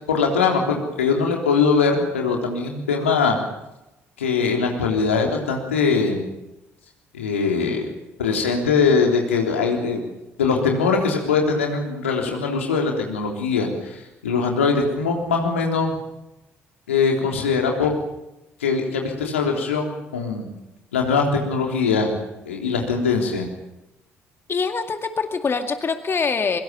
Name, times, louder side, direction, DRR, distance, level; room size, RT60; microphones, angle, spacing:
voice 1, 0.1-3.4 4.2-6.2 7.1-7.8 8.2-10.0 10.4-16.0 16.9-17.9 18.6-20.5 20.9-22.2 22.5-23.5, left 5 dB, 80° left, 1 dB, 3.5 m, -21 dB
voice 2, 24.5-26.6, left 5 dB, 35° left, 7 dB, 2.1 m, -24 dB
23.5 x 23.5 x 7.1 m, 0.93 s
figure-of-eight pair, 45°, 7 cm